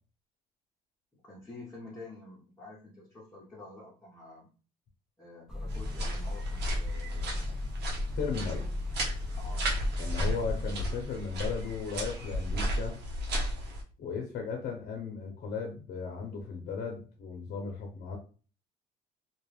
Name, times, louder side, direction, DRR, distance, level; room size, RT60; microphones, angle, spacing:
voice 1, 1.1-4.5 5.2-7.5 9.4-9.8, left 2 dB, 15° left, -6 dB, 0.8 m, -49 dB
sound 1, 5.5-10.7, left 2 dB, 5° right, 0.4 m, -36 dB
sound 2, 5.7-13.8, equal, 80° right, 0.9 m, -34 dB
voice 2, 8.2-8.7 10.0-13.0 14.0-18.2, left 5 dB, 70° left, 1 dB, 0.7 m, -36 dB
2.4 x 2.3 x 3.2 m, 0.38 s
cardioid pair, 110°, 17 cm